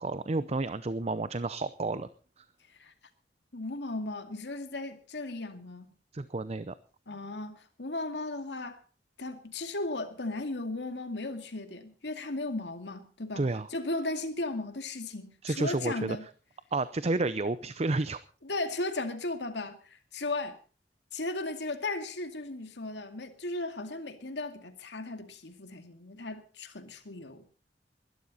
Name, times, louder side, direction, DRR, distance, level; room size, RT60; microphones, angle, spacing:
voice 1, 0.0-2.1 2.4-2.5 6.1-6.7 13.4-13.7 15.4-16.2 16.7-18.2, right 2 dB, 35° right, 0.6 m, -31 dB
voice 2, 3.5-5.9 7.1-8.8 9.2-13.4 13.7-16.2 18.4-20.6 21.1-27.5, left 2 dB, 80° left, 2.2 m, -36 dB
21.0 x 12.5 x 4.2 m
head